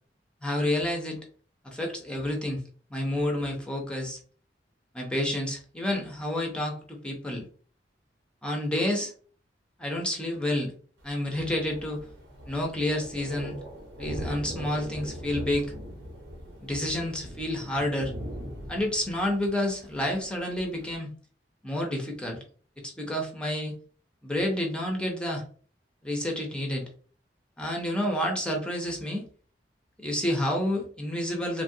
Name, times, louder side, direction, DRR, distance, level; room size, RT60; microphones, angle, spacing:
voice 1, 0.4-1.2 1.6-2.6 2.9-4.2 4.9-7.4 8.4-9.1 9.8-10.7 11.0-12.0 12.5-13.5 14.0-15.7 16.6-18.1 18.7-21.1 21.6-22.4 22.8-23.7 24.2-25.4 26.0-26.8 27.6-29.2 30.0-31.6, left 1 dB, 5° left, 0 dB, 0.6 m, -29 dB
Thunder, 11.0-21.0, equal, 85° right, 1.0 m, -41 dB
3.2 x 2.4 x 2.6 m, 0.42 s
head